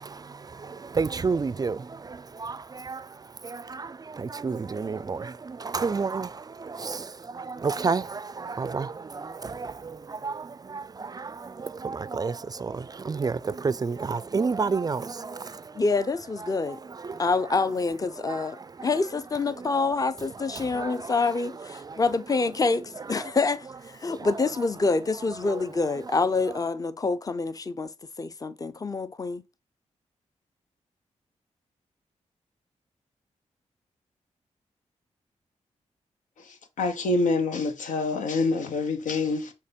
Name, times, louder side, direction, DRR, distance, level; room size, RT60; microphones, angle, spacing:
voice 1, 0.6-3.0 3.4-6.3 6.6-6.9 7.8-8.0 8.6-15.5 17.1-17.2 18.3-18.4 20.8-20.9, right 4 dB, 30° right, 0.3 m, -30 dB
voice 2, 15.8-16.8 17.2-18.6 18.8-23.7 24.0-27.9 28.2-29.4, left 3 dB, 30° left, 0.6 m, -26 dB
voice 3, 36.8-39.5, left 3 dB, 90° left, 1.0 m, -26 dB
6.6 x 2.9 x 5.2 m
cardioid pair, 70°, 13 cm